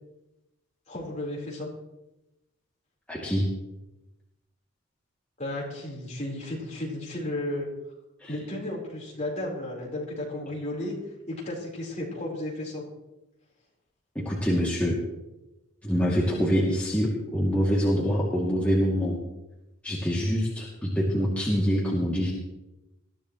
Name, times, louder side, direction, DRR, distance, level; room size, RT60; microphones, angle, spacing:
voice 1, 0.9-1.7 5.4-7.7 8.3-10.9 11.3-12.8, left 1 dB, 30° left, -3 dB, 4.2 m, -33 dB
voice 2, 3.1-3.5 8.2-8.3 14.1-15.0 15.8-19.2 19.8-22.3, equal, 5° left, -6 dB, 2.5 m, -25 dB
21.0 x 14.5 x 3.1 m, 0.96 s
head